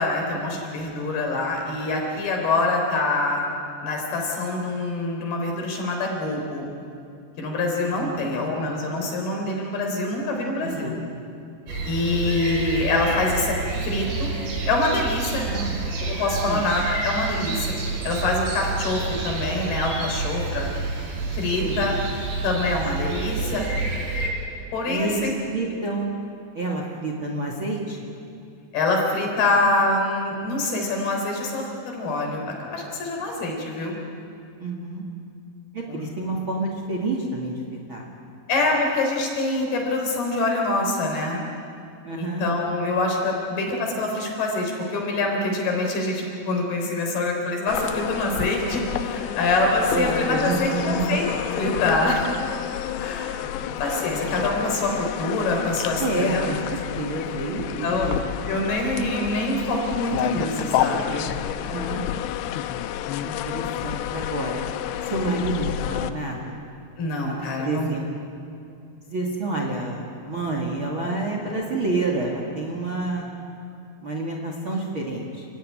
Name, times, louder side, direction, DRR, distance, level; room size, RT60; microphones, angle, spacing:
voice 1, 0.0-3.4 3.8-6.7 7.4-10.9 11.9-13.6 13.8-14.3 14.7-15.5 16.0-17.7 18.0-20.7 21.3-21.9 22.4-23.6 24.7-25.3 28.7-34.0 35.9-36.0 38.5-41.4 42.2-52.3 53.0-54.9 55.2-56.5 57.8-58.2 58.5-61.3 67.0-68.0, left 2 dB, 60° left, 1 dB, 5.8 m, -25 dB
voice 2, 7.8-8.1 10.6-11.0 15.4-15.8 16.4-16.7 21.6-21.8 24.9-26.1 26.5-28.1 34.6-35.0 35.7-38.1 42.0-42.5 49.9-51.2 51.6-51.8 53.4-54.1 56.0-58.2 61.6-62.0 63.2-64.6 65.0-66.6 67.6-68.1 69.0-73.3 74.0-75.4, right 2 dB, 40° right, 1 dB, 2.2 m, -29 dB
sound 1, 11.7-24.3, right 3 dB, 80° right, 6.1 m, -29 dB
sound 2, 47.7-66.1, left 12 dB, 80° left, 3.0 m, -30 dB
29.5 x 16.0 x 9.9 m, 2.5 s
omnidirectional pair, 5.1 m